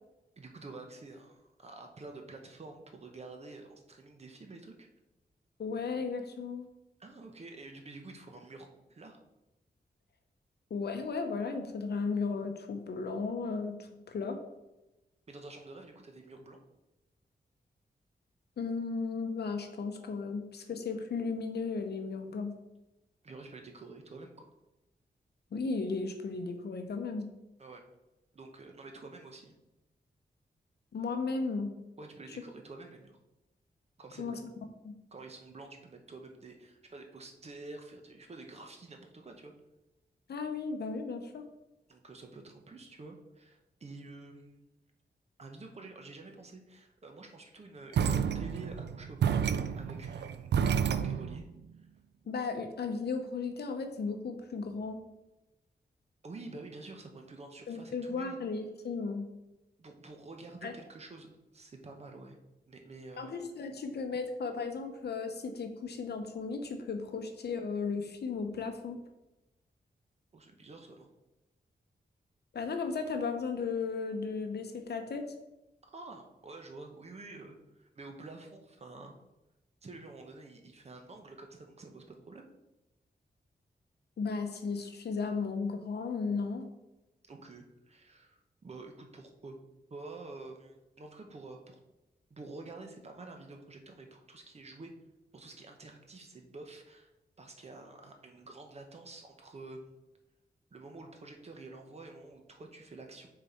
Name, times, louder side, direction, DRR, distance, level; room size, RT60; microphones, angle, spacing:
voice 1, 0.4-4.9 7.0-9.2 15.3-16.6 23.2-24.5 27.6-27.8 28.3-29.5 32.0-33.2 34.0-34.4 35.1-39.5 41.9-44.7 45.4-49.4 49.8-51.4 56.2-58.4 59.8-62.4 62.7-63.3 70.3-71.1 75.9-79.1 79.8-82.4 87.3-89.6 89.9-91.8 92.3-94.9 95.3-97.1 97.4-99.9 100.7-103.3, right 3 dB, 40° right, 3 dB, 0.9 m, -49 dB
voice 2, 5.6-6.7 10.7-14.4 18.6-22.6 25.5-27.3 30.9-31.7 34.2-34.4 34.8-34.9 40.3-41.4 52.3-55.0 57.7-59.3 60.6-60.7 63.2-69.0 72.5-75.3 84.2-86.7, left 4 dB, 75° left, 6 dB, 0.8 m, -35 dB
sound 1, 47.9-51.4, right 7 dB, 90° right, 0.4 m, -30 dB
6.4 x 4.1 x 4.4 m, 0.97 s
wide cardioid pair, 170°, 17 cm